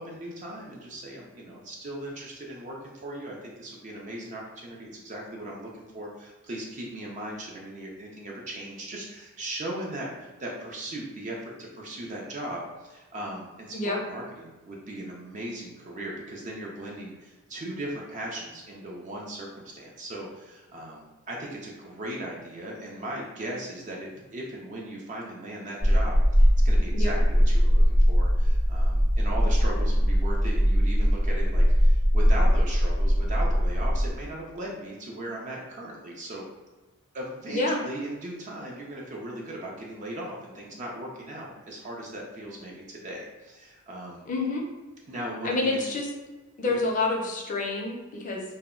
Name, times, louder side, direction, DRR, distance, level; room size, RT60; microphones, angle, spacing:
voice 1, 0.0-36.4 37.1-44.3 45.1-45.8 46.6-46.8, right 1 dB, 35° right, -2 dB, 0.4 m, -38 dB
sound 1, 25.8-34.1, equal, 85° right, 0.6 m, -21 dB
voice 2, 37.5-37.8 44.3-44.6 45.4-46.1 46.6-48.4, left 2 dB, 35° left, -1 dB, 0.4 m, -28 dB
2.1 x 2.0 x 3.5 m, 1.2 s
head